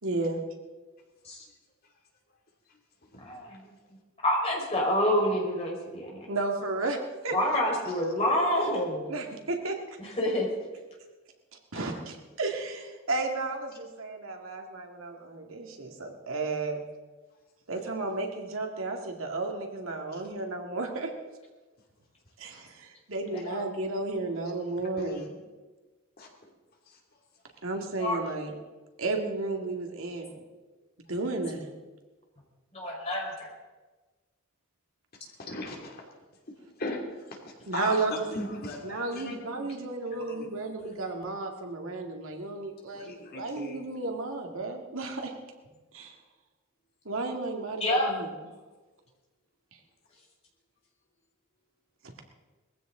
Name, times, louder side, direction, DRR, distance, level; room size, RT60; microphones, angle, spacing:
voice 1, 0.0-0.4 6.3-7.0 7.2-7.4 9.1-9.8 11.7-16.8 17.7-21.1 22.4-25.3 27.6-28.5 29.0-30.4 31.1-31.7 37.7-38.3 38.8-45.3 45.9-46.1 47.1-48.3, right 3 dB, 75° right, 2 dB, 2.1 m, -33 dB
voice 2, 3.2-3.6 4.2-6.3 7.3-9.1 10.0-10.5 23.4-23.6 28.0-28.2 32.7-33.5 47.8-48.1, left 1 dB, 30° left, -2 dB, 4.8 m, -27 dB
voice 3, 24.5-25.3 26.2-26.3 35.4-36.0 36.8-37.0 37.7-39.7 40.1-40.5 42.9-43.8, left 1 dB, 45° left, 0 dB, 2.7 m, -38 dB
21.0 x 15.5 x 3.9 m, 1.2 s
head